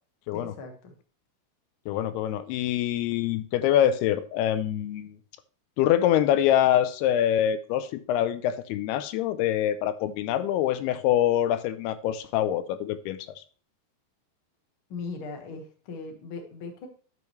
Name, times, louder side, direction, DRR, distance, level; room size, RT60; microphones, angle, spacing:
voice 1, 0.3-0.9 14.9-16.9, left 4 dB, 65° left, 3 dB, 1.2 m, -39 dB
voice 2, 1.9-5.1 5.8-13.4, left 11 dB, 85° left, 11 dB, 2.6 m, -25 dB
11.0 x 5.3 x 3.1 m, 0.40 s
omnidirectional pair, 4.7 m